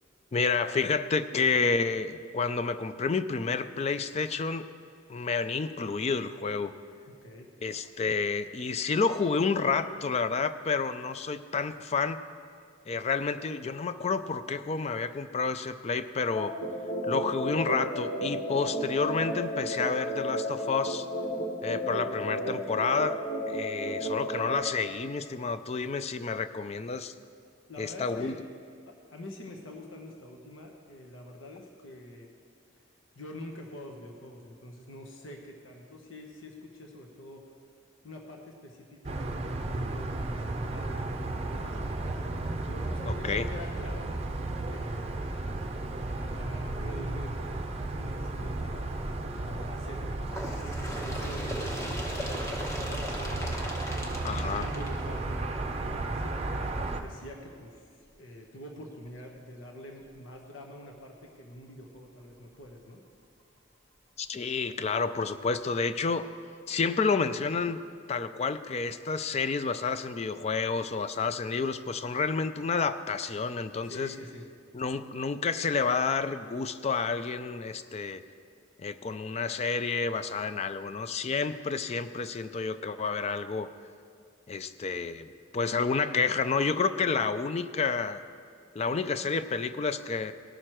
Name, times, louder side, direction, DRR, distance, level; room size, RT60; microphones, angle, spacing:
voice 1, 0.3-4.7 5.1-6.7 7.6-12.2 12.9-16.5 17.0-21.1 21.6-23.2 23.5-27.1 27.8-28.4 43.0-43.5 54.2-54.7 64.2-66.3 66.7-67.8 68.1-74.1 74.7-78.2 78.8-83.7 84.5-88.2 88.8-90.3, left 4 dB, 35° left, 12 dB, 0.4 m, -30 dB
voice 2, 7.1-7.5 22.2-22.5 27.7-28.5 28.9-32.3 33.1-37.6 38.0-42.4 42.7-45.3 45.9-57.9 58.2-63.0 73.8-74.5, left 1 dB, 80° left, 2 dB, 1.1 m, -46 dB
sound 1, 16.4-24.6, equal, 65° left, 1.9 m, -33 dB
sound 2, 39.0-57.0, right 2 dB, 30° right, 0.6 m, -34 dB
Bird, 50.3-55.7 56.6-56.7 57.1-57.2 58.1-58.2 59.1-59.2 60.1-60.2, equal, 15° left, 1.0 m, -38 dB
18.0 x 6.4 x 4.5 m, 2.3 s
head